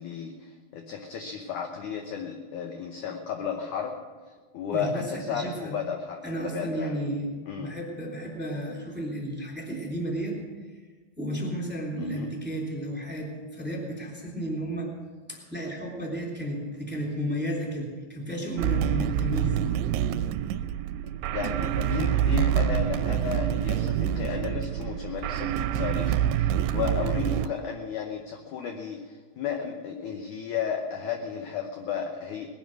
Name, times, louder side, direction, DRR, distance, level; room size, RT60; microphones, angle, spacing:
voice 1, 0.0-4.0 4.5-7.0 7.4-7.7 12.0-12.3 21.3-32.5, left 7 dB, 75° left, 3 dB, 1.9 m, -33 dB
voice 2, 4.7-5.7 6.2-7.3 7.6-10.4 11.2-14.9 15.3-19.6, right 1 dB, 5° right, -2 dB, 2.4 m, -33 dB
sound 1, 18.6-27.5, right 10 dB, 85° right, 2.6 m, -26 dB
20.0 x 11.0 x 6.4 m, 1.4 s
omnidirectional pair, 4.8 m